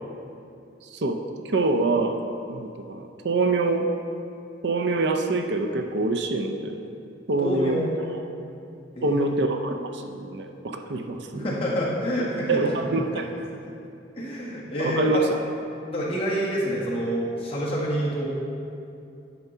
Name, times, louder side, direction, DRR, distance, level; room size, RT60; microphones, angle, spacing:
voice 1, 0.8-2.2 2.5-3.9 4.6-6.8 7.3-7.8 8.1-8.2 9.0-11.5 12.5-13.2 14.8-15.2, right 3 dB, 65° right, 5 dB, 0.5 m, -25 dB
voice 2, 7.4-7.9 9.0-9.2 11.3-12.6 12.9-13.0 13.3-13.4 14.2-15.2 15.9-18.3, equal, 30° left, -6 dB, 1.6 m, -27 dB
9.5 x 4.6 x 5.5 m, 2.6 s
head